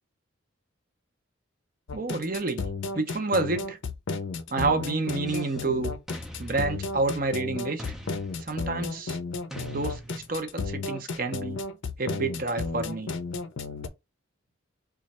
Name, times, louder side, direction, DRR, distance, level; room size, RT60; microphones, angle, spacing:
sound 1, 1.9-13.9, left 4 dB, 65° left, 0.5 m, -33 dB
voice 1, 1.9-2.6 2.9-3.8 4.5-5.9 6.4-7.8 8.4-9.2 9.7-11.6 12.0-13.1, right 3 dB, 45° right, 0.6 m, -29 dB
sound 2, 5.3-5.7 6.1-7.4 7.8-8.9 9.5-10.6, equal, ahead, 0.4 m, -43 dB
3.1 x 2.4 x 4.1 m
head